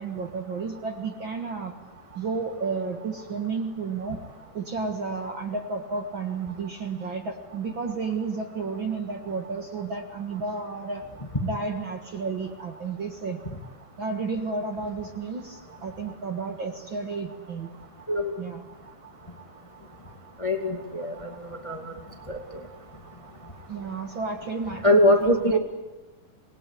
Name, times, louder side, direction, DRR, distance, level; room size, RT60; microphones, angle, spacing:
voice 1, 0.0-1.7 2.2-4.2 4.5-11.0 11.4-13.4 14.0-17.7 18.4-18.6 23.7-25.6, right 4 dB, 45° right, 4 dB, 2.0 m, -32 dB
voice 2, 20.4-21.9 22.3-22.4 24.8-25.6, equal, 10° left, 3 dB, 1.8 m, -22 dB
26.5 x 20.5 x 10.0 m, 1.1 s
omnidirectional pair, 3.6 m